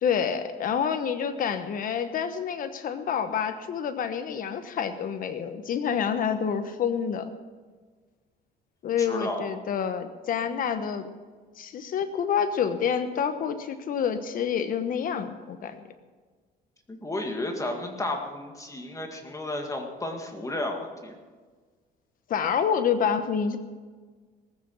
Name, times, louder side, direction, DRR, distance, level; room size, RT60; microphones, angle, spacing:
voice 1, 0.0-7.3 8.8-11.1 11.6-15.8 22.3-23.6, left 7 dB, 55° left, 10 dB, 1.1 m, -28 dB
voice 2, 9.0-9.6 16.9-21.1, left 1 dB, 20° left, 3 dB, 1.9 m, -33 dB
19.0 x 8.5 x 6.4 m, 1.4 s
cardioid pair, 110°, 17 cm